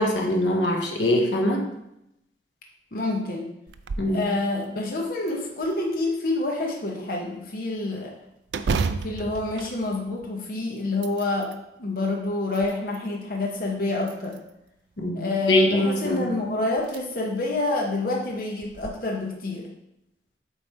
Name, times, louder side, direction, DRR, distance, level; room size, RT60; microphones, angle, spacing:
voice 1, 0.0-1.7 4.0-4.2 15.0-16.3, left 1 dB, 90° left, 1 dB, 1.1 m, -23 dB
voice 2, 2.9-3.5 4.1-8.1 9.0-11.5 11.8-14.4 15.1-19.7, left 2 dB, 55° left, -1 dB, 0.9 m, -27 dB
sound 1, 3.7-4.2 4.6-4.7 5.3-6.1 8.5-10.5 10.9-11.6 12.3-13.1 14.0-14.7 16.1-16.2 16.8-17.0 17.5-17.6 18.6-18.9, right 4 dB, 75° right, 0.4 m, -32 dB
8.1 x 3.2 x 4.3 m, 0.84 s
head